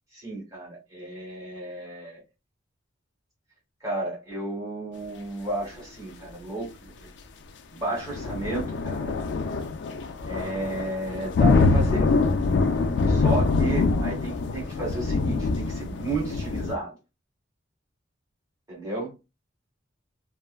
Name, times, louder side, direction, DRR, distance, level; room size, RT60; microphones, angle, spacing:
voice 1, 0.1-2.2 3.8-7.1 7.7-9.1 10.2-12.1 13.1-16.9 18.7-19.1, right 2 dB, 15° right, 1.6 m, -33 dB
sound 1, 8.0-16.7, left 3 dB, 60° left, 0.3 m, -24 dB
3.1 x 2.0 x 2.2 m
head